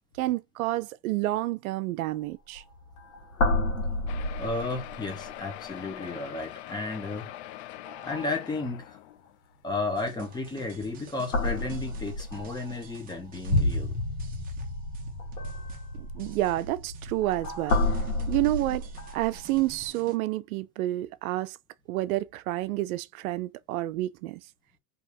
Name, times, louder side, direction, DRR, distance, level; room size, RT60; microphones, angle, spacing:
voice 1, 0.2-2.6 16.0-18.9 19.1-21.6 21.9-24.4, right 17 dB, 75° right, 0.5 m, -29 dB
sound 1, 2.1-2.2 2.5-2.7 3.0-5.3 5.8-6.4 7.2-7.5 7.9-8.7 10.2-10.7 11.3-19.9, left 2 dB, 85° left, 1.9 m, -31 dB
sound 2, 4.1-9.5 10.2-10.3 10.5-10.6 11.0-11.1, left 14 dB, 55° left, 0.5 m, -42 dB
voice 2, 4.4-7.3 8.0-9.0 9.6-13.9, left 3 dB, 10° left, 0.9 m, -33 dB
sound 3, 10.0-20.2, right 5 dB, 20° right, 0.7 m, -51 dB
3.6 x 2.8 x 2.7 m
supercardioid pair, 145°, 43 cm